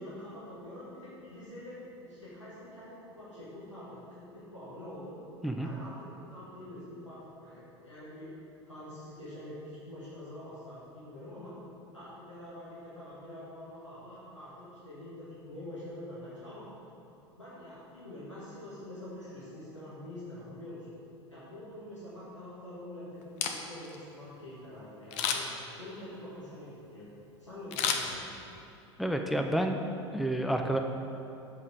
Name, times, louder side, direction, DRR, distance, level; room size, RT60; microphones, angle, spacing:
voice 1, 0.0-5.2 5.6-8.3 8.7-11.5 11.9-16.7 17.4-20.9 21.3-25.4 25.8-27.1 27.4-28.2, left 1 dB, 90° left, -10 dB, 1.6 m, -45 dB
Camera, 23.2-24.0 25.1-25.7 27.7-28.7 29.1-29.2, left 7 dB, 45° left, 0.7 m, -32 dB
voice 2, 29.0-29.8 30.1-30.8, right 1 dB, ahead, 4 dB, 0.4 m, -29 dB
7.5 x 5.5 x 4.8 m, 2.9 s
figure-of-eight pair, 75°, 15 cm